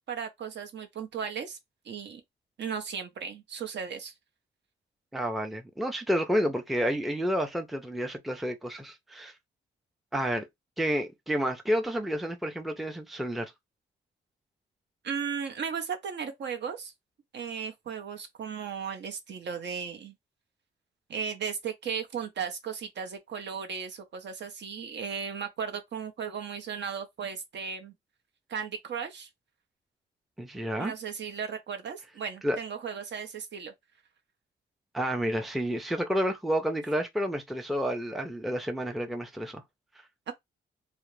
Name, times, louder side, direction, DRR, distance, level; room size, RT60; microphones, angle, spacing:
voice 1, 0.0-1.6 1.9-2.2 2.6-4.1 15.0-16.9 17.3-20.1 21.1-27.9 28.5-29.3 30.8-33.7 40.3-40.4, right 7 dB, 65° right, 0.7 m, -36 dB
voice 2, 5.1-9.3 10.1-10.5 10.8-13.5 30.4-30.9 32.4-32.6 34.9-39.6, equal, ahead, 0.5 m, -30 dB
2.4 x 2.0 x 3.0 m
cardioid pair, 80°, 20 cm